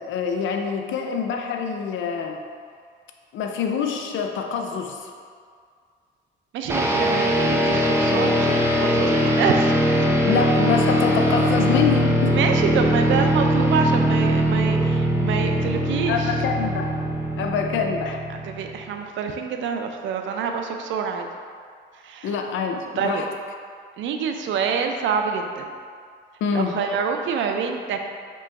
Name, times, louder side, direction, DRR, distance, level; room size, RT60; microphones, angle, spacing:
voice 1, 0.0-2.4 3.3-5.1 10.2-12.4 16.1-16.9 17.4-18.2 22.2-23.2 26.4-26.7, left 6 dB, 75° left, 3 dB, 0.5 m, -25 dB
voice 2, 6.5-8.5 8.8-10.1 12.3-16.3 18.3-21.3 21.9-22.3 23.0-23.2 24.0-25.7 26.5-28.1, right 6 dB, 75° right, 4 dB, 0.5 m, -26 dB
sound 1, 6.7-18.9, equal, 10° right, 0.5 m, -21 dB
3.3 x 3.0 x 4.5 m, 2.1 s
cardioid pair, 90°, 20 cm